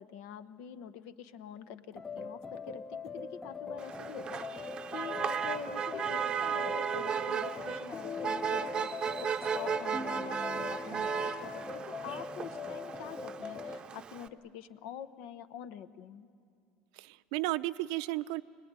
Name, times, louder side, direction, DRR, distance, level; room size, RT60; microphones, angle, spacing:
voice 1, 0.0-8.9 9.2-16.3, left 8 dB, 65° left, 12 dB, 1.0 m, -46 dB
sound 1, 2.0-13.8, left 4 dB, 10° left, 0.6 m, -41 dB
Motor vehicle (road), 3.8-14.3, right 7 dB, 25° right, 0.7 m, -35 dB
voice 2, 17.0-18.4, right 18 dB, 75° right, 13 dB, 0.6 m, -34 dB
26.0 x 19.5 x 9.7 m, 2.4 s
cardioid pair, 145°, 3 cm